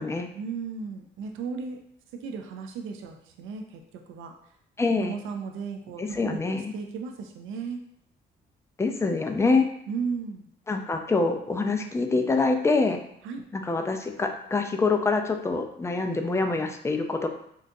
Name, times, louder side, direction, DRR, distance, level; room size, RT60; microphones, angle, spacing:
voice 1, 0.3-1.8 2.1-4.4 4.9-7.8 9.9-10.5 13.2-13.4, right 5 dB, 85° right, 4 dB, 0.4 m, -35 dB
voice 2, 4.8-5.1 6.0-6.7 8.8-9.7 10.7-13.0 13.5-17.3, left 3 dB, 15° left, 5 dB, 0.4 m, -25 dB
3.7 x 2.4 x 2.6 m, 0.70 s
cardioid pair, 90°, 20 cm